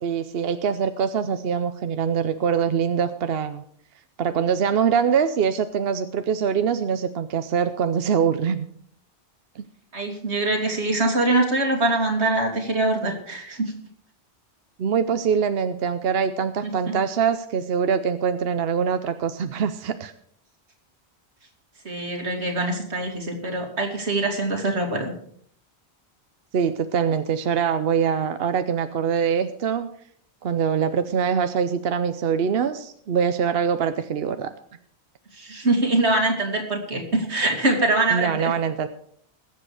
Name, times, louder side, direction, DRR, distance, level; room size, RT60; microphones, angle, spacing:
voice 1, 0.0-3.6 4.2-8.7 9.6-9.7 14.8-20.1 26.5-29.9 30.4-34.5 38.1-38.9, right 7 dB, 65° right, 10 dB, 0.9 m, -23 dB
voice 2, 9.9-13.7 16.6-16.9 21.8-25.1 35.3-38.5, right 2 dB, 90° right, 2 dB, 2.8 m, -23 dB
20.5 x 7.8 x 4.8 m, 0.62 s
omnidirectional pair, 1.1 m